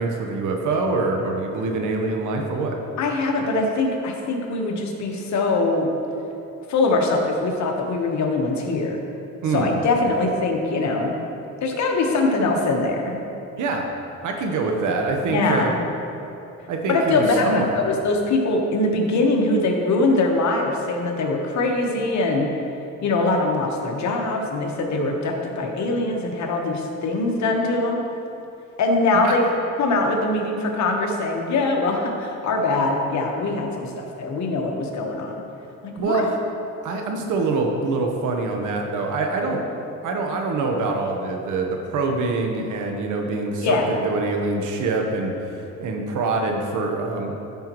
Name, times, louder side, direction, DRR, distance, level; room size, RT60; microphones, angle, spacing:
voice 1, 0.0-2.8 9.4-9.7 13.6-13.9 14.2-15.7 16.7-17.8 29.2-29.3 36.0-36.3 36.8-39.6 40.0-43.8 44.0-45.3 45.8-47.4, right 3 dB, 80° right, 2 dB, 1.1 m, -24 dB
voice 2, 3.0-5.9 6.7-9.0 9.5-11.2 11.6-13.2 15.3-15.7 16.9-22.5 23.0-28.0 28.8-29.4 29.8-35.4 35.8-36.2 43.6-43.9, left 2 dB, 65° left, 1 dB, 1.2 m, -22 dB
12.5 x 5.6 x 3.0 m, 2.8 s
cardioid pair, 90°, 30 cm